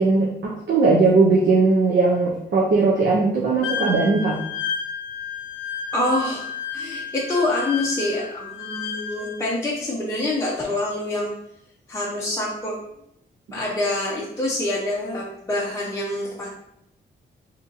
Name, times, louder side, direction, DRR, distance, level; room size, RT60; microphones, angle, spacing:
voice 1, 0.0-4.4, right 3 dB, 75° right, -4 dB, 0.7 m, -19 dB
Wind instrument woodwind instrument, 3.6-9.6, left 6 dB, 85° left, 0.4 m, -31 dB
voice 2, 5.9-11.3 11.9-12.7 13.5-16.5, left 2 dB, 15° left, -5 dB, 0.5 m, -26 dB
3.9 x 2.8 x 2.6 m, 0.75 s
wide cardioid pair, 165°, 19 cm